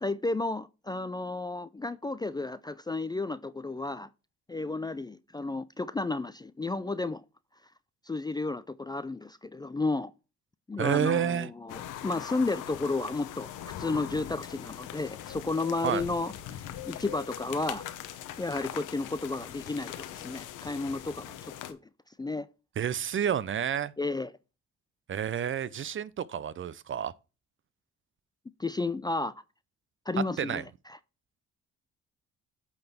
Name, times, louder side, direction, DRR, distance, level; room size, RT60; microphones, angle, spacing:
voice 1, 0.0-4.1 4.5-7.2 8.1-10.1 10.7-13.5 13.8-17.8 18.4-21.8 22.2-22.5 24.0-24.3 28.6-29.4 30.1-31.0, left 3 dB, 15° left, 0.4 m, -32 dB
voice 2, 10.8-11.5 15.8-16.0 22.8-23.9 25.1-27.1 30.4-30.6, right 9 dB, 40° right, 0.5 m, -29 dB
sound 1, 11.7-21.7, left 11 dB, 90° left, 0.9 m, -41 dB
8.6 x 4.0 x 4.2 m
cardioid pair, 90°, 30 cm